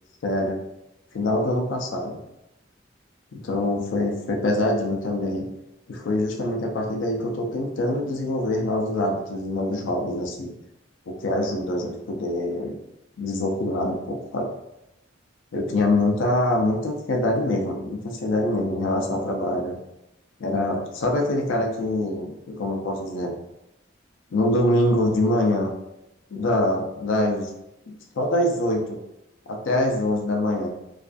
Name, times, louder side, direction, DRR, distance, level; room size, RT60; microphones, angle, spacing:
voice 1, 0.2-0.6 1.1-2.2 3.3-5.4 5.9-10.5 11.1-12.8 13.2-14.5 15.5-19.7 20.4-23.3 24.3-25.7 26.3-27.5 28.2-29.0 29.5-30.7, left 1 dB, 80° left, 0 dB, 0.4 m, -24 dB
2.3 x 2.3 x 2.4 m, 0.86 s
head